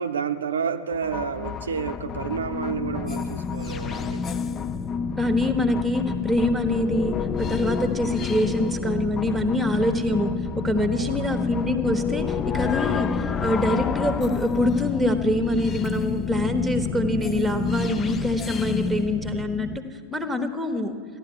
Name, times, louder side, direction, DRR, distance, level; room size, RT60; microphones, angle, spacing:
voice 1, 0.0-4.2 10.9-11.4, right 6 dB, 70° right, 7 dB, 0.5 m, -30 dB
sound 1, 0.9-19.8, left 6 dB, 25° left, 0.4 m, -29 dB
voice 2, 5.2-19.7 20.1-21.0, left 1 dB, 5° right, 8 dB, 1.3 m, -25 dB
15.5 x 11.0 x 6.3 m, 2.1 s
figure-of-eight pair, 90°, 0 cm